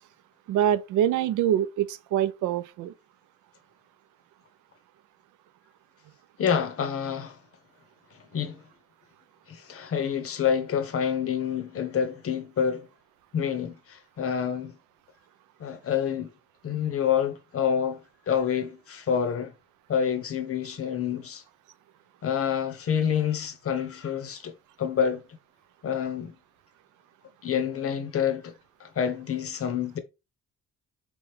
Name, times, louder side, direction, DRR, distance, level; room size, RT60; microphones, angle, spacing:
voice 1, 0.5-2.9, right 11 dB, 80° right, 0.5 m, -25 dB
voice 2, 6.4-7.4 8.1-8.6 9.5-12.9 13.3-14.7 15.6-16.3 16.6-18.0 18.3-19.5 19.9-21.4 22.2-25.2 25.8-26.3 27.4-28.5 28.8-30.0, left 8 dB, 50° left, 0.7 m, -28 dB
3.5 x 3.0 x 3.3 m
cardioid pair, 90°, 30 cm